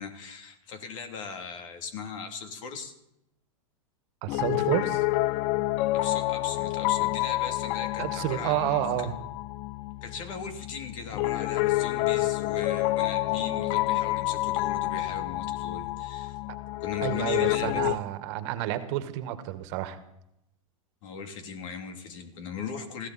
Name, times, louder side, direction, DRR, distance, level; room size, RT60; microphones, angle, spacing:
voice 1, 0.0-2.9 5.9-8.8 10.0-16.4 16.8-17.9 21.0-23.1, left 6 dB, 65° left, 5 dB, 3.1 m, -38 dB
voice 2, 4.2-5.0 8.0-9.1 16.5-16.6 17.0-20.0, right 13 dB, 55° right, 10 dB, 1.7 m, -30 dB
Piano, 4.3-18.0, left 18 dB, 45° left, 0.5 m, -28 dB
21.0 x 15.5 x 4.3 m, 0.82 s
hypercardioid pair, 115°, 18 cm